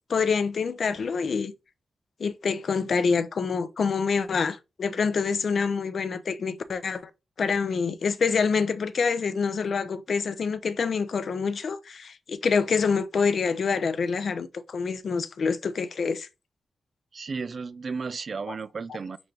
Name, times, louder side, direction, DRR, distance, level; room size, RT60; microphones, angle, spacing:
voice 1, 0.1-1.5 2.2-7.0 7.4-16.3 18.5-18.6, left 5 dB, 55° left, 0.4 m, -26 dB
voice 2, 17.1-19.2, right 4 dB, 45° right, 0.3 m, -34 dB
5.8 x 2.5 x 3.2 m
wide cardioid pair, 145°, 0 cm